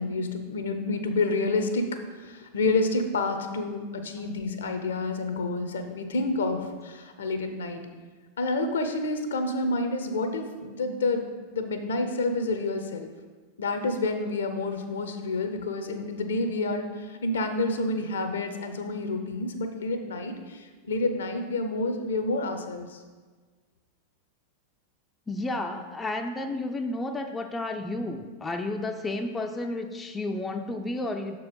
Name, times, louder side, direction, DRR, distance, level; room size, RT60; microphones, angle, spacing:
voice 1, 0.0-7.8 8.4-13.1 13.6-23.0, left 2 dB, 65° left, 7 dB, 0.7 m, -29 dB
voice 2, 25.3-31.5, left 2 dB, 15° left, 5 dB, 0.4 m, -32 dB
6.5 x 4.5 x 5.3 m, 1.4 s
figure-of-eight pair, 90°, 0 cm